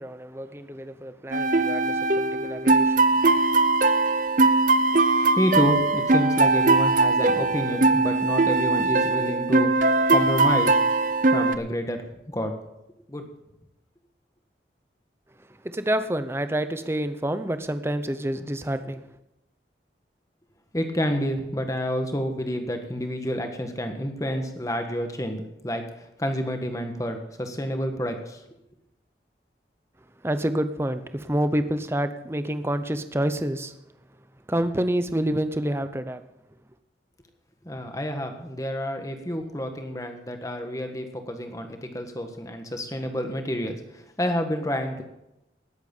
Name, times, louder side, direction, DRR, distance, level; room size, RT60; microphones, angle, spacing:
voice 1, 0.0-3.4 15.4-19.2 30.2-33.7 34.5-36.2, right 1 dB, 15° right, 11 dB, 0.7 m, -28 dB
sound 1, 1.3-11.5, right 3 dB, 50° right, 0.6 m, -21 dB
voice 2, 5.4-10.7 11.3-12.0 12.3-12.5 13.1-13.2 20.7-28.4 37.6-45.0, equal, 20° left, 5 dB, 1.5 m, -29 dB
18.5 x 8.0 x 5.5 m, 0.88 s
head